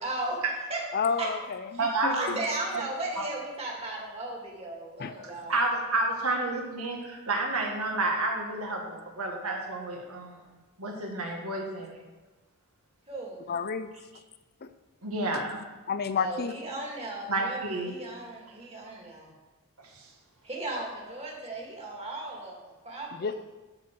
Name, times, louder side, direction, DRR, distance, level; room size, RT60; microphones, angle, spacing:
voice 1, 0.0-0.8 1.2-1.3 2.1-5.7 13.1-13.5 16.1-19.3 20.4-23.3, right 2 dB, 30° right, -2 dB, 2.3 m, -36 dB
voice 2, 0.9-1.7 2.0-2.4 5.0-5.1 13.5-13.9 14.6-14.7 15.3-15.4 15.9-16.5 23.2-23.3, left 5 dB, 45° left, 11 dB, 0.5 m, -30 dB
voice 3, 1.8-2.4 5.5-10.4 10.8-12.0 15.0-15.6 17.3-17.9 20.0-20.1, right 2 dB, 80° right, 1 dB, 1.9 m, -30 dB
12.5 x 4.5 x 6.2 m, 1.2 s
head